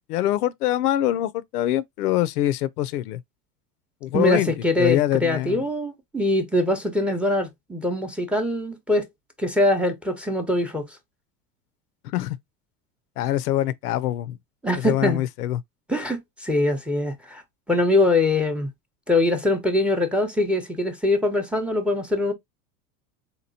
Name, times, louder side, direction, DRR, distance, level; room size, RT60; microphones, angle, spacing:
voice 1, 0.0-3.2 4.0-4.5 4.8-5.6 12.1-12.4 13.2-14.4 14.8-15.6, left 13 dB, 85° left, 0.5 m, -24 dB
voice 2, 4.1-9.0 9.4-10.9 14.6-15.2 15.9-17.4 17.7-18.7 19.1-22.3, left 2 dB, 5° right, 0.7 m, -23 dB
3.8 x 2.9 x 2.7 m
hypercardioid pair, 105°, 44 cm